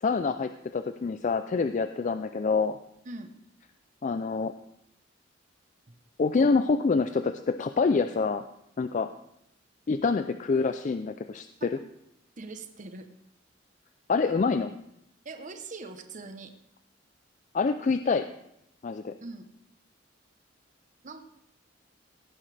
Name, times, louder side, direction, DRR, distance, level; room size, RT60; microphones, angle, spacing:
voice 1, 0.0-2.8 4.0-4.5 6.2-8.4 8.8-9.1 9.9-11.5 14.1-14.7 17.5-18.3 18.8-19.1, left 4 dB, 40° left, 10 dB, 0.4 m, -26 dB
voice 2, 12.4-13.1 15.2-16.5 19.2-19.5 21.0-21.2, right 3 dB, 40° right, 7 dB, 0.9 m, -42 dB
17.0 x 9.7 x 3.3 m, 0.79 s
head